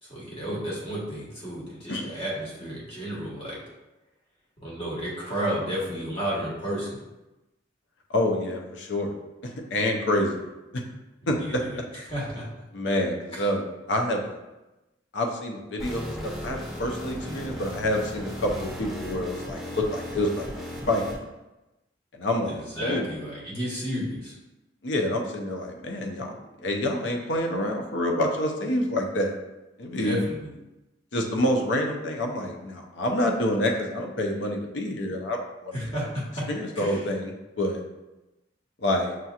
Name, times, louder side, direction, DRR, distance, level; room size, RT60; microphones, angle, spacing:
voice 1, 0.0-3.6 4.6-7.0 11.2-12.5 13.3-13.4 17.2-17.5 22.5-24.4 30.0-30.5 35.7-36.5 36.7-37.1, equal, 30° left, -6 dB, 1.2 m, -32 dB
voice 2, 8.1-9.1 9.4-10.8 11.3-11.6 12.7-14.4 15.1-20.4 20.9-21.1 22.1-23.1 24.8-29.3 29.8-30.2 31.1-35.7 36.5-37.8 38.8-39.2, left 1 dB, 75° left, 2 dB, 0.6 m, -27 dB
sound 1, 15.8-21.1, equal, ahead, 1.0 m, -36 dB
6.1 x 2.8 x 2.4 m, 1.0 s
head